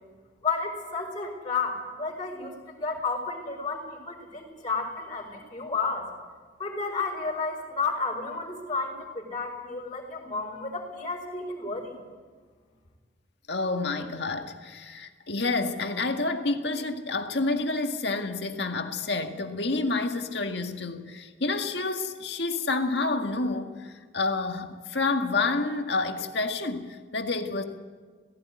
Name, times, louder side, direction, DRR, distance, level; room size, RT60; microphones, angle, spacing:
voice 1, 0.4-6.1 6.6-11.9, left 4 dB, 25° left, 4.7 m, -32 dB
voice 2, 13.5-27.6, left 3 dB, 65° left, 1.9 m, -29 dB
18.0 x 16.5 x 9.6 m
head